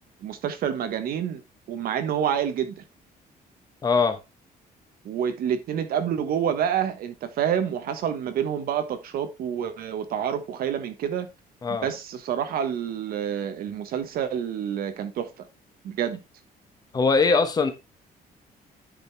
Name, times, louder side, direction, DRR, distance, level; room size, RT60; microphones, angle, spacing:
voice 1, 0.2-1.4 1.7-2.8 5.0-11.3 11.7-15.5 15.8-16.2, right 9 dB, 70° right, 1.2 m, -28 dB
voice 2, 3.8-4.2 11.6-11.9 16.9-17.7, left 4 dB, 25° left, 1.2 m, -21 dB
10.0 x 5.2 x 3.4 m
cardioid pair, 175°, 16 cm